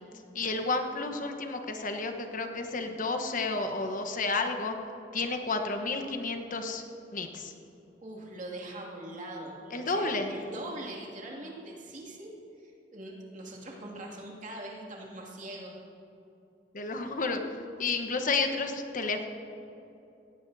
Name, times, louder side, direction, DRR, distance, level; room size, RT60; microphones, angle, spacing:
voice 1, 0.3-4.8 5.1-6.8 7.1-7.5 9.7-10.3 16.7-17.4 17.8-19.3, left 3 dB, 45° left, 5 dB, 1.1 m, -31 dB
voice 2, 8.0-12.3 12.6-15.8, right 1 dB, 45° right, -2 dB, 2.4 m, -42 dB
17.5 x 16.0 x 2.8 m, 2.8 s
head